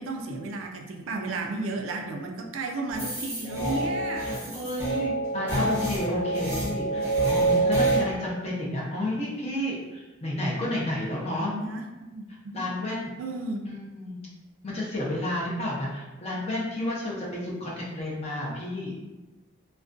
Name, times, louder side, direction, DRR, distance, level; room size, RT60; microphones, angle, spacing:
voice 1, 0.0-4.6 11.4-12.7 13.2-13.7, right 2 dB, 85° right, 3 dB, 0.3 m, -33 dB
sound 1, 2.9-8.0, right 2 dB, 10° right, 0.7 m, -26 dB
voice 2, 4.2-11.5 12.3-13.1 13.7-14.2 14.6-19.0, left 1 dB, 30° left, -4 dB, 0.5 m, -31 dB
2.4 x 2.1 x 2.4 m, 1.1 s
head